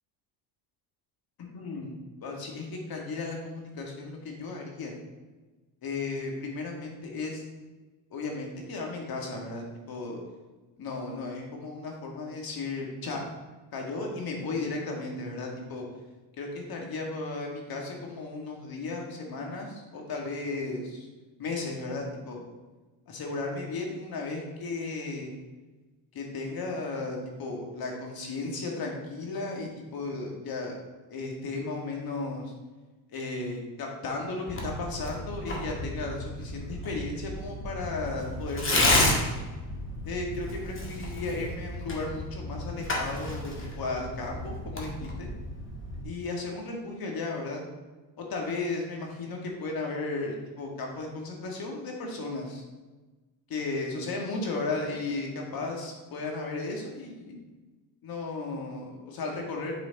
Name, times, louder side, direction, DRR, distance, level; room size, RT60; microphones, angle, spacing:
voice 1, 1.4-4.9 5.8-7.4 8.1-10.2 10.8-13.2 13.7-15.9 16.4-21.1 21.4-22.4 23.1-25.3 26.1-30.8 31.1-32.5 33.1-39.2 40.0-45.3 46.0-47.6 48.2-52.6 53.5-57.4 58.0-59.7, left 3 dB, 50° left, 0 dB, 2.1 m, -35 dB
Tearing, 34.5-46.0, left 1 dB, 25° left, 2.0 m, -32 dB
8.9 x 5.0 x 4.1 m, 1.2 s
supercardioid pair, 95°, 45 cm